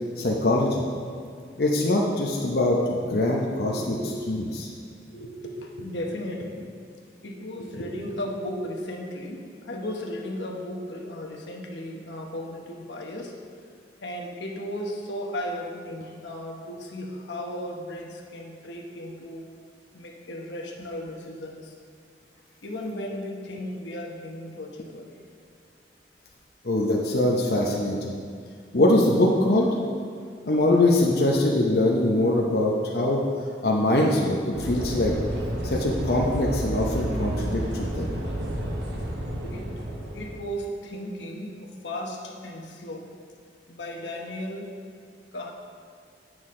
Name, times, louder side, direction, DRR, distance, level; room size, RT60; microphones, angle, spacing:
voice 1, 0.2-0.8 1.6-3.9 4.3-4.7 26.6-28.1 28.7-29.7 30.5-33.2 33.6-35.1 35.6-38.1, left 1 dB, 60° left, -2 dB, 0.7 m, -23 dB
voice 2, 3.6-4.4 5.1-6.8 7.2-13.3 14.0-19.4 19.9-21.7 22.6-25.1 39.4-39.8 40.1-43.2 43.7-44.7 45.3-45.5, equal, 90° left, 0 dB, 1.1 m, -35 dB
sound 1, 34.5-40.4, right 1 dB, 75° right, 1.1 m, -31 dB
9.4 x 6.2 x 3.7 m, 2.2 s
head